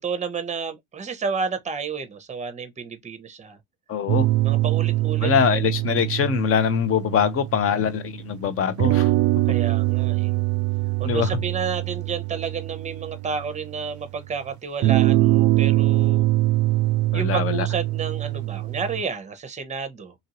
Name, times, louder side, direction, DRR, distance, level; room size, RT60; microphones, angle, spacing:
voice 1, 0.0-3.6 4.4-5.3 9.5-10.4 11.0-16.3 17.1-20.1, right 5 dB, 20° right, 0.8 m, -31 dB
voice 2, 3.9-4.3 5.2-9.1 11.0-11.3 17.1-17.7, left 7 dB, 40° left, 0.7 m, -23 dB
sound 1, 4.1-8.0 8.8-13.9 14.8-19.0, right 18 dB, 45° right, 0.4 m, -23 dB
2.8 x 2.6 x 3.0 m
supercardioid pair, 105°, 36 cm